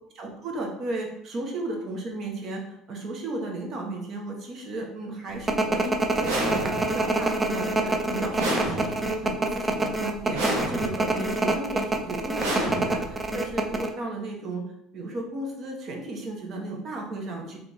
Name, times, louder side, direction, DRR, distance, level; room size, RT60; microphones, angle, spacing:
voice 1, 0.1-14.6 14.9-17.6, right 2 dB, 50° right, 0 dB, 1.2 m, -34 dB
sound 1, 5.5-13.9, right 2 dB, 20° right, 0.5 m, -26 dB
sound 2, 6.2-7.1 8.4-9.3 10.3-11.1 12.4-13.3, right 2 dB, 80° right, 1.3 m, -30 dB
3.3 x 3.2 x 4.1 m, 0.79 s
supercardioid pair, 100°, 0 cm